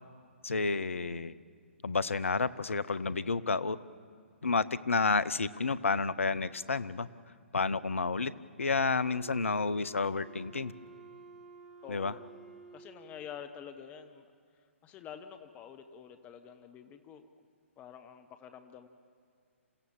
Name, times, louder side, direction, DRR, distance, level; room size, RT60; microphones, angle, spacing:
voice 1, 0.4-1.3 1.8-3.8 4.4-7.1 7.5-8.3 8.6-10.7 11.9-12.1, left 4 dB, 70° left, 17 dB, 0.6 m, -30 dB
Wind instrument woodwind instrument, 9.0-13.3, right 5 dB, 5° right, 1.8 m, -52 dB
voice 2, 11.8-12.2 12.7-14.3 14.8-17.3 17.8-18.9, left 8 dB, 20° left, 9 dB, 0.8 m, -48 dB
28.0 x 16.0 x 7.3 m, 2.1 s
figure-of-eight pair, 125°, 7 cm